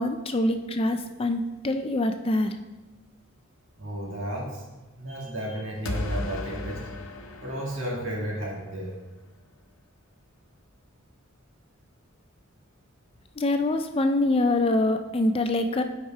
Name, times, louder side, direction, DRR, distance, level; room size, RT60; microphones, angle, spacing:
voice 1, 0.0-2.5 13.4-15.8, left 2 dB, 25° left, 7 dB, 0.4 m, -25 dB
voice 2, 3.8-4.6 5.0-6.8 7.4-9.0, right 1 dB, 60° right, -3 dB, 2.0 m, -33 dB
sound 1, 5.9-8.8, left 2 dB, 70° left, 0.8 m, -35 dB
8.2 x 4.8 x 4.6 m, 1.2 s
head